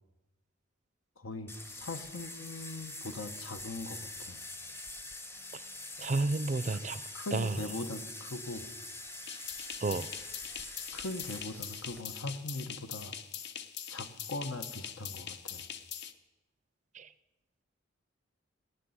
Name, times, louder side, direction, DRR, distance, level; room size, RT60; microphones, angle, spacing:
voice 1, 1.2-4.4 7.1-8.7 10.9-13.2 13.9-15.6, left 2 dB, 80° left, 9 dB, 1.1 m, -41 dB
sound 1, 1.5-12.0, left 2 dB, 10° left, 0.7 m, -44 dB
voice 2, 6.0-7.0 7.3-7.6 9.8-10.1 16.9-17.1, right 3 dB, 35° right, 15 dB, 0.4 m, -31 dB
sound 2, 9.3-16.1, left 9 dB, 55° left, 0.7 m, -43 dB
17.5 x 6.7 x 9.5 m, 1.1 s
head